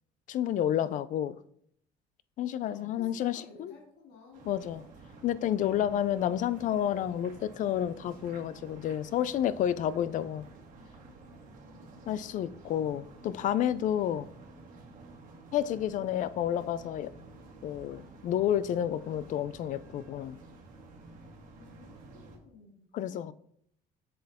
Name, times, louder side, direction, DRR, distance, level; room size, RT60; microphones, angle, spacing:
voice 1, 0.3-1.4 2.4-3.7 4.4-4.8 5.2-10.4 12.1-14.3 15.5-17.1 17.6-20.4 22.9-23.3, left 10 dB, 50° left, 0.4 m, -30 dB
voice 2, 2.6-4.7 11.6-12.3 21.5-23.3, left 5 dB, 70° left, 2.5 m, -55 dB
sound 1, 4.3-22.4, right 3 dB, 50° right, 1.9 m, -51 dB
7.7 x 6.8 x 3.6 m
cardioid pair, 140°, 17 cm